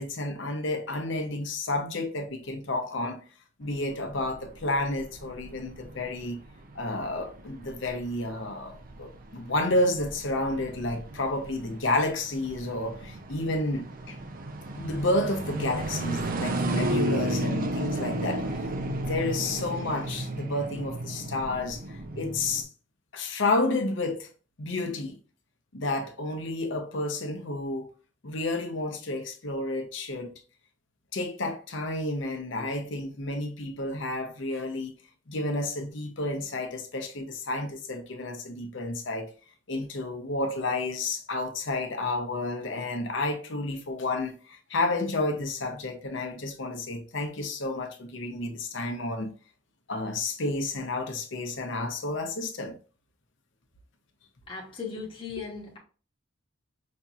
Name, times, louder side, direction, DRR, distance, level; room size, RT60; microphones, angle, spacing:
voice 1, 0.0-3.2 3.6-6.4 6.7-14.2 14.8-22.7 23.1-24.3 24.6-25.2 25.7-27.9 28.2-30.4 31.1-34.9 35.3-39.3 39.7-49.3 49.9-52.8, left 2 dB, 65° left, 0.8 m, -31 dB
sound 1, 3.7-22.6, right 1 dB, 45° right, 0.5 m, -34 dB
voice 2, 54.5-55.8, left 5 dB, 25° left, 1.0 m, -37 dB
5.1 x 2.8 x 2.4 m
head